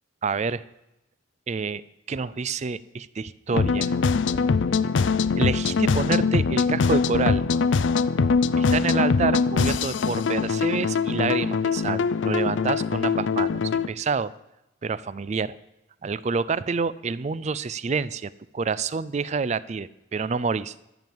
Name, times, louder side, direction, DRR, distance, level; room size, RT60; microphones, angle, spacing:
voice 1, 0.2-0.6 1.5-1.8 2.1-4.0 5.4-7.4 8.6-13.6 13.9-14.3 14.8-15.5 16.0-20.7, right 4 dB, 35° right, 18 dB, 0.4 m, -28 dB
sound 1, 3.5-13.9, left 5 dB, 70° left, 0.4 m, -23 dB
12.0 x 7.1 x 7.6 m, 0.91 s
head